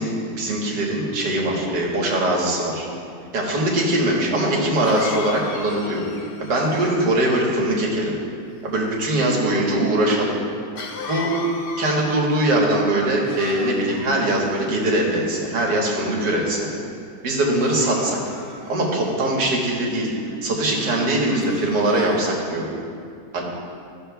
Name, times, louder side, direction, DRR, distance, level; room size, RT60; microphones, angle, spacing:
voice 1, 0.0-2.9 3.3-6.0 6.4-8.1 8.6-10.3 11.1-11.3 11.8-16.7 17.2-18.2 18.7-20.1 20.4-22.7 23.3-23.4, right 1 dB, 75° right, -3 dB, 1.9 m, -21 dB
Cough, 3.8-3.9 4.8-7.2 10.8-12.5 13.2-14.1 14.9-15.6 16.2-16.5 17.5-19.1 20.7-21.0 21.4-22.3, left 4 dB, 85° left, 0.5 m, -36 dB
14.0 x 6.6 x 2.3 m, 2.3 s
omnidirectional pair, 1.9 m